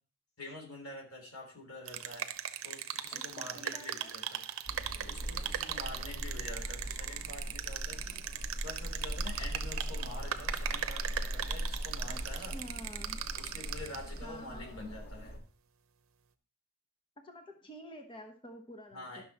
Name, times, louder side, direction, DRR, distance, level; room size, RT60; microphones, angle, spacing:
voice 1, 0.4-2.3 2.6-4.4 5.0-8.3 8.6-12.6 13.4-15.4 18.9-19.2, left 2 dB, 85° left, 1 dB, 3.3 m, -47 dB
sound 1, 1.9-14.2, right 9 dB, 75° right, 0.8 m, -39 dB
voice 2, 3.1-4.1 12.1-13.2 14.2-14.7 17.2-19.2, equal, 25° left, 4 dB, 0.9 m, -49 dB
sound 2, 4.7-15.4, equal, 50° left, 1.7 m, -40 dB
12.0 x 6.1 x 4.2 m, 0.41 s
head